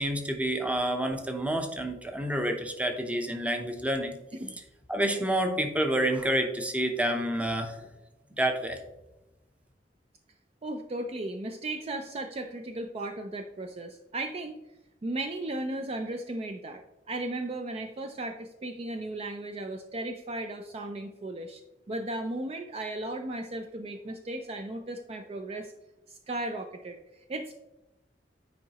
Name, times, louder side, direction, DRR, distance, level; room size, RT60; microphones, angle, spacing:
voice 1, 0.0-4.1 4.9-7.9 8.4-8.8, right 1 dB, 10° right, 5 dB, 0.7 m, -28 dB
voice 2, 10.6-14.6 15.0-21.6 21.9-25.7 26.1-27.5, right 2 dB, 35° right, 6 dB, 0.4 m, -36 dB
9.4 x 4.6 x 2.9 m, 0.97 s
head